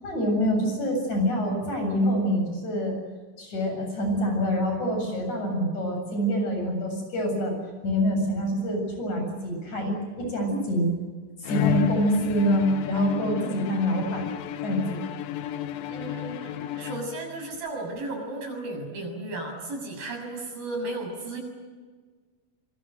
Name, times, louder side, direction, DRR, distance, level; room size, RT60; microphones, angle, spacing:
voice 1, 0.0-3.0 3.4-7.6 7.8-11.0 11.4-14.2 14.6-15.0, equal, 55° left, 3 dB, 8.9 m, -26 dB
Bowed string instrument, 11.4-17.5, left 13 dB, 90° left, 2.8 m, -32 dB
voice 2, 15.9-21.4, right 2 dB, 90° right, 3 dB, 8.8 m, -34 dB
26.0 x 23.5 x 8.0 m, 1.5 s
omnidirectional pair, 4.0 m